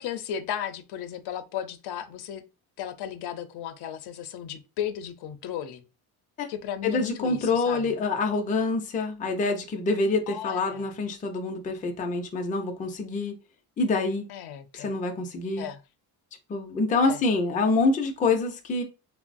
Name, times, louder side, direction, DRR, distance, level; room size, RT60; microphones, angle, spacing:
voice 1, 0.0-2.4 2.8-5.8 6.5-7.9 10.3-10.9 14.3-14.9 15.6-15.8 17.0-17.2, left 9 dB, 85° left, 0.5 m, -35 dB
voice 2, 6.8-13.3 13.8-14.3 14.7-15.7 16.5-18.8, left 3 dB, 20° left, 0.3 m, -26 dB
3.8 x 2.0 x 2.5 m
cardioid pair, 170°, 38 cm